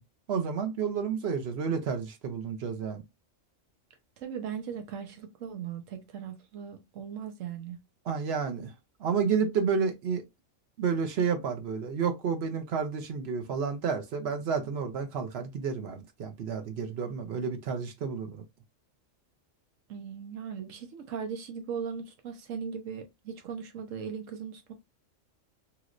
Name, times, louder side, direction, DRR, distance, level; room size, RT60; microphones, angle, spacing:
voice 1, 0.3-3.0 8.1-8.7 9.0-10.2 10.8-18.4, right 6 dB, 60° right, 0.8 m, -30 dB
voice 2, 4.2-7.8 19.9-24.7, right 7 dB, 85° right, 1.1 m, -38 dB
3.0 x 3.0 x 2.4 m
omnidirectional pair, 1.3 m